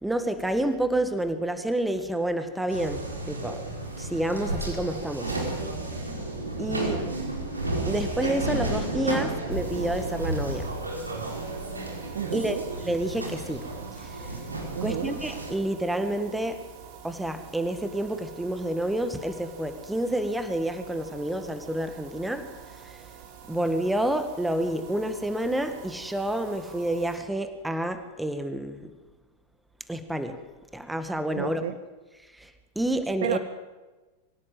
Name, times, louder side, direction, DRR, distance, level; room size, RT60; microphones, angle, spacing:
voice 1, 0.0-3.6 4.0-5.4 6.6-7.0 7.9-10.7 12.3-13.7 14.0-14.4 14.8-16.6 17.0-23.0 23.5-28.9 29.9-30.4 30.7-31.6 32.4-33.4, right 1 dB, 5° right, 9 dB, 1.8 m, -29 dB
sound 1, 2.7-15.5, right 2 dB, 80° right, 5.0 m, -32 dB
sound 2, 9.5-27.2, right 7 dB, 45° right, 3.8 m, -47 dB
voice 2, 12.1-12.6 14.7-15.1 31.3-31.7 33.2-33.4, right 10 dB, 60° right, 12 dB, 1.1 m, -30 dB
24.5 x 16.5 x 7.8 m, 1.2 s
figure-of-eight pair, 90°, 0 cm